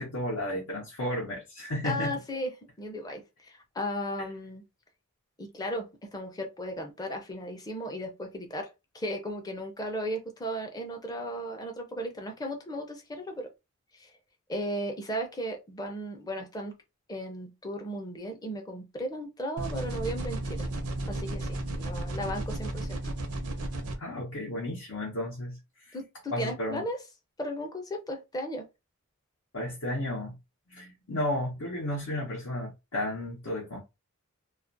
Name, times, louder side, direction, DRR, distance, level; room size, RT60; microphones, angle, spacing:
voice 1, 0.0-2.1 24.0-26.0 26.3-26.8 29.5-30.4 30.7-33.8, left 1 dB, 75° left, 0.7 m, -33 dB
voice 2, 1.8-2.5 2.8-4.6 5.4-13.5 13.9-14.1 14.5-16.7 17.1-20.7 21.1-23.0 25.9-27.0 27.4-28.6, equal, 15° left, 0.5 m, -35 dB
sound 1, 19.6-23.9, right 1 dB, 90° right, 0.6 m, -33 dB
2.3 x 2.1 x 2.5 m
head